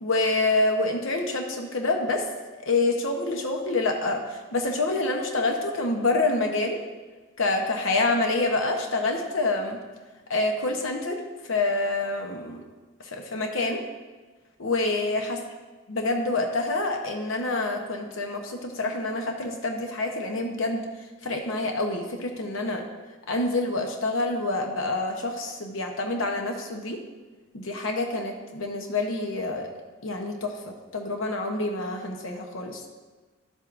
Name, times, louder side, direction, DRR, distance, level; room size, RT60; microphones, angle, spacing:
voice 1, 0.0-2.2 2.6-6.8 7.4-9.8 10.3-11.2 11.5-12.6 13.0-13.8 14.6-15.4 15.9-20.8 21.2-22.8 23.3-27.0 27.5-29.7 30.0-32.8, left 2 dB, 70° left, 3 dB, 0.8 m, -27 dB
12.5 x 7.7 x 2.5 m, 1.3 s
head